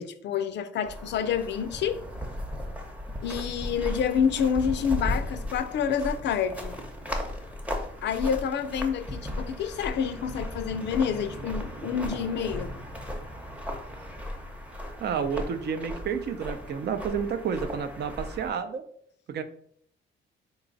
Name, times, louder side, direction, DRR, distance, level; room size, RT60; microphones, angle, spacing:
voice 1, 0.0-2.0 3.2-6.7 8.0-12.7, left 7 dB, 65° left, 0.4 m, -28 dB
sound 1, 0.8-18.5, left 1 dB, 5° right, 0.7 m, -36 dB
voice 2, 15.0-18.8 19.3-19.4, right 7 dB, 55° right, 0.5 m, -30 dB
3.9 x 2.3 x 3.9 m
cardioid pair, 90°, 20 cm